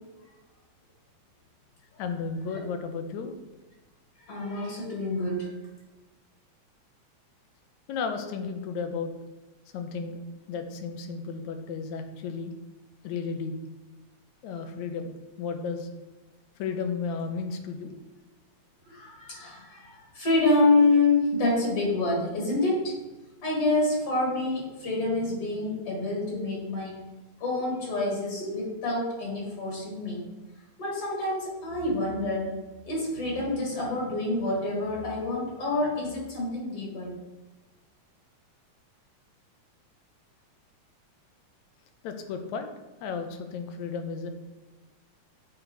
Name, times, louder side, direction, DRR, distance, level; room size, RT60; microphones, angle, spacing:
voice 1, 2.0-3.3 7.9-9.1 9.7-10.2 10.5-12.5 13.0-13.5 14.4-15.1 15.4-15.9 16.6-17.9 42.0-42.7 43.0-44.3, left 5 dB, 80° left, 6 dB, 2.0 m, -33 dB
voice 2, 4.3-5.5 18.9-22.9 23.4-27.0 27.4-30.2 30.8-37.1, left 2 dB, 55° left, -3 dB, 2.8 m, -27 dB
7.7 x 4.1 x 4.5 m, 1.1 s
omnidirectional pair, 3.4 m